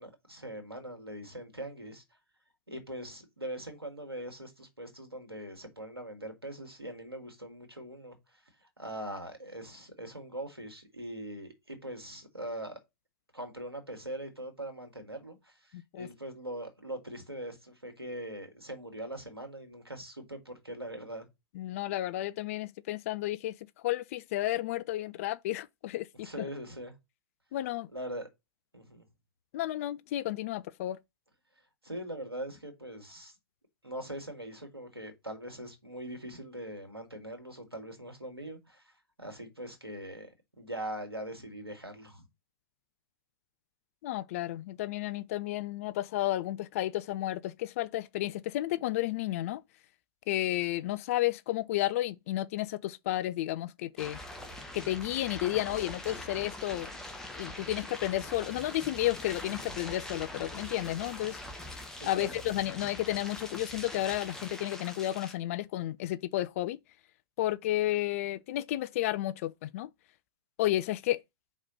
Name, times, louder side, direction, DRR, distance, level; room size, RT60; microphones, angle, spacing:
voice 1, 0.0-2.0 2.7-8.2 8.8-12.7 13.3-21.2 26.2-26.9 27.9-28.3 28.7-29.1 31.8-33.3 33.8-38.9 39.2-40.3 40.6-42.3 62.2-62.4, right 1 dB, 85° right, 2.2 m, -41 dB
voice 2, 15.7-16.1 21.5-23.6 23.8-26.5 27.5-27.9 29.5-31.0 44.0-49.6 50.3-54.2 54.7-56.9 57.3-61.4 62.0-66.8 67.4-69.9 70.6-71.2, left 15 dB, 35° left, 0.4 m, -32 dB
sound 1, 54.0-65.3, left 1 dB, 5° left, 1.2 m, -43 dB
4.9 x 4.1 x 5.4 m
figure-of-eight pair, 110°, 13 cm